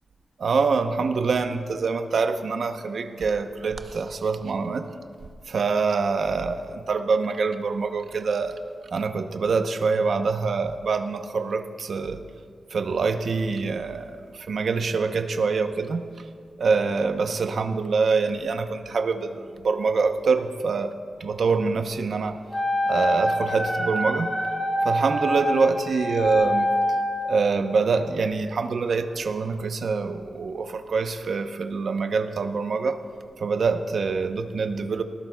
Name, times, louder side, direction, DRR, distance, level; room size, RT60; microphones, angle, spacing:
voice 1, 0.4-4.9 5.5-8.6 8.9-12.2 12.7-16.0 16.6-20.9 21.2-22.4 22.9-24.3 24.8-26.7 27.2-33.0 33.4-35.0, right 4 dB, 65° right, 7 dB, 0.8 m, -25 dB
Wind instrument woodwind instrument, 22.5-27.3, equal, 20° left, 2.3 m, -25 dB
21.5 x 18.5 x 2.3 m, 2.1 s
wide cardioid pair, 165°, 0 cm